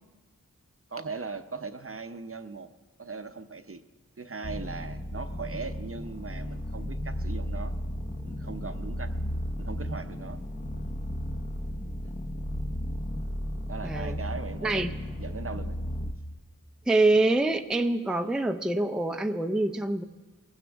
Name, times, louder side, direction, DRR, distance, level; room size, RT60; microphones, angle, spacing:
voice 1, 0.9-2.7 3.0-3.8 4.2-7.7 8.2-9.1 9.6-10.4 12.0-12.1 13.7-15.8, right 4 dB, 40° right, 9 dB, 0.7 m, -39 dB
sound 1, 4.4-16.1, equal, 25° left, 0.8 m, -34 dB
voice 2, 13.8-14.2 14.6-14.9 16.9-20.0, right 2 dB, ahead, 7 dB, 0.5 m, -25 dB
18.5 x 15.5 x 3.5 m, 1.3 s
wide cardioid pair, 45°, 33 cm